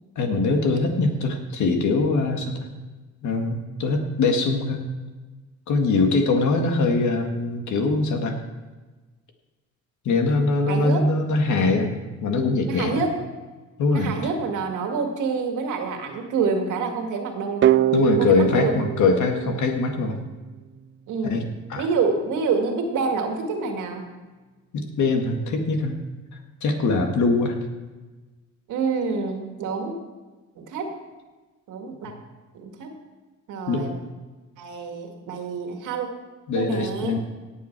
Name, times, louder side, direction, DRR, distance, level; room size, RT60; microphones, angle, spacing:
voice 1, 0.2-2.6 3.2-4.8 5.7-8.4 10.1-11.9 12.2-13.0 13.8-14.2 17.9-20.2 21.3-21.4 21.7-21.8 24.7-26.0 26.6-27.6 33.7-34.1 36.5-37.2, left 3 dB, 75° left, 4 dB, 1.9 m, -22 dB
voice 2, 10.7-11.1 12.7-13.3 13.9-17.7 18.2-18.8 21.1-21.4 21.8-24.1 28.7-30.0 30.6-31.0 31.7-32.1 32.5-32.9 33.5-33.9 34.6-36.1 36.5-37.2, right 5 dB, 85° right, 3 dB, 2.0 m, -27 dB
sound 1, 17.6-20.4, right 13 dB, 40° right, 0.4 m, -23 dB
18.0 x 7.4 x 4.6 m, 1.2 s
cardioid pair, 90°, 30 cm